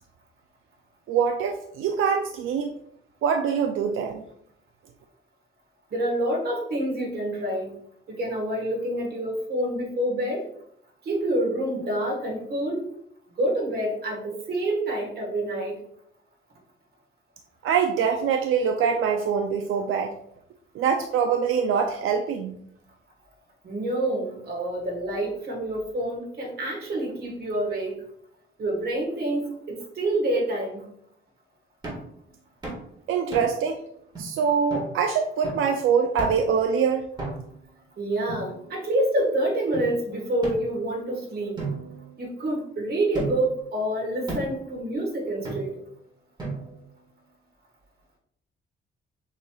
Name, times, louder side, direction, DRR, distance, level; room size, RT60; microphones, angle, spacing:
voice 1, 1.1-2.7 3.2-4.2 17.6-20.1 20.7-22.6 33.1-33.8 34.2-37.1, right 6 dB, 85° right, 4 dB, 0.4 m, -24 dB
voice 2, 5.9-7.7 8.1-10.4 11.0-12.8 13.4-15.7 23.6-28.0 28.6-30.8 38.0-41.6 42.2-45.8, right 1 dB, 50° right, -1 dB, 1.4 m, -27 dB
sound 1, 31.8-32.1 32.6-32.9 33.3-33.7 34.1-34.2 34.7-34.9 35.4-35.7 36.2-36.5 37.2-37.6 38.3-39.0 39.7-39.9 40.4-41.1 41.6-42.6 43.1-43.6 44.3-44.6 45.4-45.9 46.4-46.9, right 2 dB, 20° right, 1.4 m, -35 dB
6.5 x 3.1 x 2.3 m, 0.70 s
wide cardioid pair, 160°, 20 cm